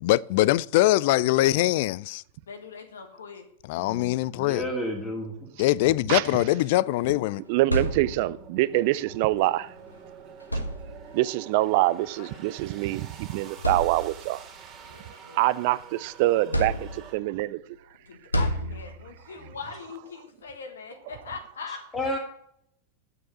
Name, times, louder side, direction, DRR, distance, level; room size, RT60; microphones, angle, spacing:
voice 1, 0.0-2.2 3.7-4.7 5.6-7.4, left 17 dB, 50° left, 0.3 m, -23 dB
voice 2, 2.5-3.5 18.1-21.8, left 5 dB, 70° left, 1.4 m, -40 dB
voice 3, 3.8-5.5 21.7-22.2, left 1 dB, 15° left, 2.0 m, -32 dB
sound 1, 6.6-17.1, right 6 dB, 30° right, 2.6 m, -48 dB
sound 2, 7.4-8.5 9.8-9.9 10.4-11.3 12.4-12.5 13.1-13.2 13.6-14.4 14.9-15.9 16.5-17.3 18.3-19.2, equal, 85° left, 1.3 m, -30 dB
voice 4, 7.5-9.7 11.1-14.4 15.4-17.6, right 17 dB, 50° right, 0.4 m, -25 dB
8.6 x 6.8 x 7.5 m
figure-of-eight pair, 90°, 0 cm